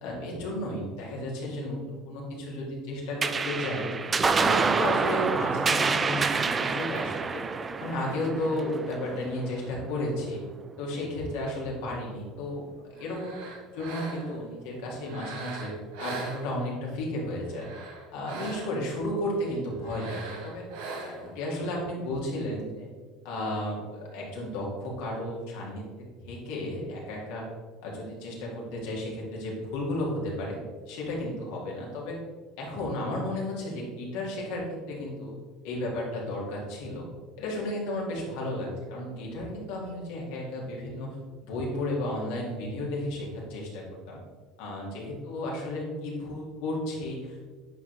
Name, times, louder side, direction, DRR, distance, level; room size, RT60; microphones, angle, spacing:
voice 1, 0.0-3.9 4.2-7.4 7.8-10.4 10.8-13.4 13.7-15.7 16.0-17.7 18.1-20.6 21.0-22.9 23.2-27.5 27.8-30.6 30.9-32.2 32.6-35.3 35.6-37.1 37.4-41.2 41.4-44.2 44.6-47.5, left 1 dB, 80° left, -3 dB, 2.0 m, -33 dB
sound 1, 3.2-10.0, right 4 dB, 25° right, 0.4 m, -27 dB
sound 2, 13.0-14.5 15.0-16.9 17.4-18.9 19.8-21.4, right 3 dB, 80° right, 1.1 m, -40 dB
9.0 x 4.4 x 3.2 m, 1.4 s
supercardioid pair, 90°, 0 cm